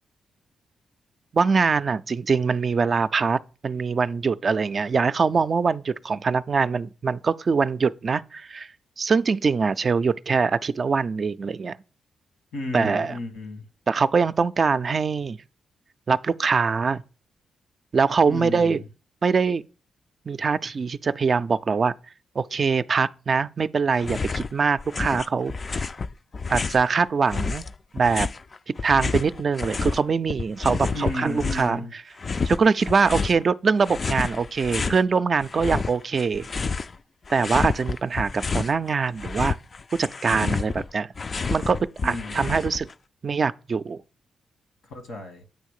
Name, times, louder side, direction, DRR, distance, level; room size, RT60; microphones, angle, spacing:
voice 1, 1.3-8.7 9.0-11.8 12.7-13.1 13.9-15.4 16.1-17.0 17.9-18.8 19.2-19.6 20.3-21.9 22.4-25.8 26.5-27.6 27.9-28.3 28.8-31.8 32.4-36.5 37.3-39.6 39.9-41.1 41.5-41.8 42.0-42.9 43.2-44.0, right 5 dB, 50° right, 0.3 m, -23 dB
voice 2, 12.5-13.6 18.3-18.8 30.9-31.9 42.0-42.6 44.9-45.4, left 2 dB, 85° left, 1.5 m, -33 dB
Walk Snow, 24.0-24.5 24.8-26.9 27.3-30.0 30.3-31.8 32.2-33.4 33.8-35.0 35.4-37.0 37.2-38.7 39.1-42.9, left 4 dB, 45° left, 0.3 m, -29 dB
8.8 x 3.1 x 6.5 m
cardioid pair, 60°, 0 cm